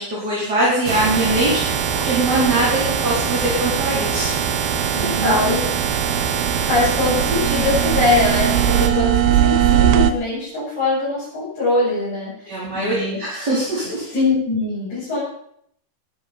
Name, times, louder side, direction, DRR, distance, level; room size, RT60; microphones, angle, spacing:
voice 1, 0.0-4.3 5.0-5.5 12.5-14.0, right 1 dB, 25° right, -6 dB, 4.2 m, -22 dB
sound 1, 0.9-8.9, right 7 dB, 70° right, 3.3 m, -23 dB
sound 2, 4.1-10.1, right 11 dB, 85° right, 3.1 m, -20 dB
voice 2, 4.8-5.6 6.6-13.2 14.0-15.2, left 3 dB, 40° left, -11 dB, 9.2 m, -22 dB
19.5 x 12.5 x 4.4 m, 0.68 s
omnidirectional pair, 5.0 m